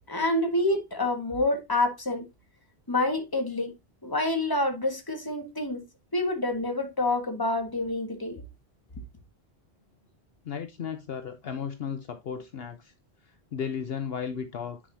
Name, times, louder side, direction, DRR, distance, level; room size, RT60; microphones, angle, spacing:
voice 1, 0.1-2.2 2.9-3.7 4.0-5.8 6.1-8.4, left 2 dB, 20° left, 1.7 m, -27 dB
voice 2, 10.4-12.9 13.2-14.8, left 7 dB, 65° left, 0.9 m, -35 dB
9.9 x 5.3 x 2.7 m
omnidirectional pair, 1.1 m